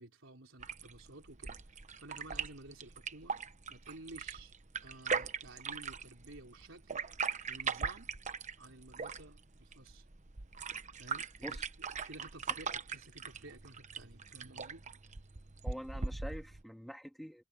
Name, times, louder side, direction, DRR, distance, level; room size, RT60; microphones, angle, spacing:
voice 1, 0.0-3.3 3.7-4.5 4.8-7.0 7.5-8.1 8.6-10.0 11.0-11.6 12.1-14.8, right 2 dB, 70° right, 4.5 m, -53 dB
sound 1, 0.6-16.6, right 5 dB, 35° right, 1.0 m, -40 dB
voice 2, 15.6-17.4, equal, ahead, 3.3 m, -45 dB
head